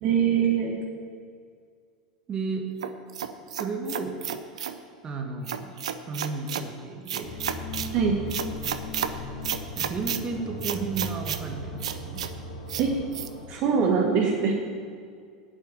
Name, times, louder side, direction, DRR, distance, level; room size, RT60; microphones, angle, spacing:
voice 1, 0.0-0.8 7.9-8.2 12.8-12.9 13.5-14.5, right 6 dB, 45° right, 0 dB, 1.2 m, -23 dB
voice 2, 2.3-2.7 3.5-4.2 5.0-7.3 9.7-12.3, right 4 dB, 25° right, 3 dB, 1.5 m, -33 dB
sound 1, 2.8-4.8 5.4-6.7 7.1-7.9 8.3-9.1 9.4-10.2 10.6-11.4 11.8-12.3 12.7-12.8 13.1-13.3, right 9 dB, 65° right, 0.6 m, -31 dB
sound 2, 7.2-13.5, left 1 dB, 65° left, 3.3 m, -37 dB
8.4 x 7.6 x 8.4 m, 2.1 s
figure-of-eight pair, 85°, 4 cm